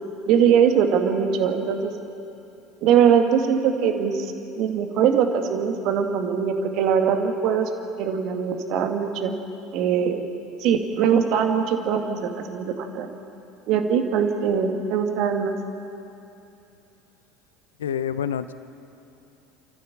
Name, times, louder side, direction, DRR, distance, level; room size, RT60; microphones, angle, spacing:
voice 1, 0.3-1.9 2.8-4.3 4.6-7.7 8.0-9.4 9.7-10.2 10.6-13.1 13.7-15.6, right 7 dB, 55° right, 5 dB, 2.0 m, -21 dB
voice 2, 17.8-18.5, left 8 dB, 80° left, 13 dB, 0.6 m, -27 dB
30.0 x 14.5 x 7.2 m, 2.8 s
figure-of-eight pair, 70°, 0 cm